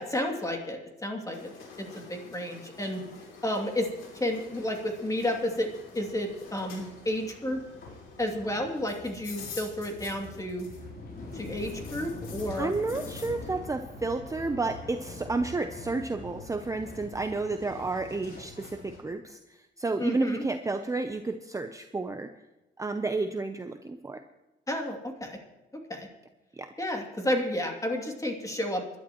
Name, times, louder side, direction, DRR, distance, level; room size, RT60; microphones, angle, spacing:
voice 1, 0.0-3.0 3.4-3.9 4.1-7.6 8.2-10.7 11.3-12.7 20.0-20.5 24.7-25.4 25.9-26.1 26.8-29.0, left 1 dB, 15° left, 2 dB, 2.6 m, -31 dB
sound 1, 1.3-11.0 11.3-13.4, left 5 dB, 85° left, 2.7 m, -48 dB
sound 2, 3.3-19.0, left 2 dB, 50° left, 3.7 m, -45 dB
voice 2, 12.6-22.3 22.8-24.2 26.5-26.7, right 3 dB, 15° right, 7 dB, 0.7 m, -31 dB
25.0 x 11.5 x 3.1 m, 1.0 s
cardioid pair, 90°, 20 cm